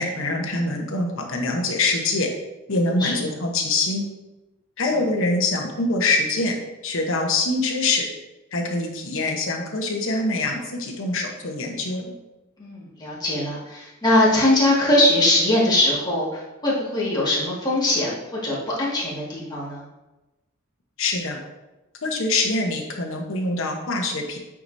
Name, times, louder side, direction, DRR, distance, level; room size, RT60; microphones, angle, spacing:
voice 1, 0.0-2.3 2.7-4.0 4.8-6.5 6.8-8.1 8.5-12.0 21.0-21.4 22.0-24.4, left 2 dB, 65° left, 2 dB, 1.1 m, -24 dB
voice 2, 12.6-19.9, left 1 dB, 20° left, -7 dB, 2.0 m, -21 dB
8.4 x 4.8 x 2.7 m, 1.0 s
head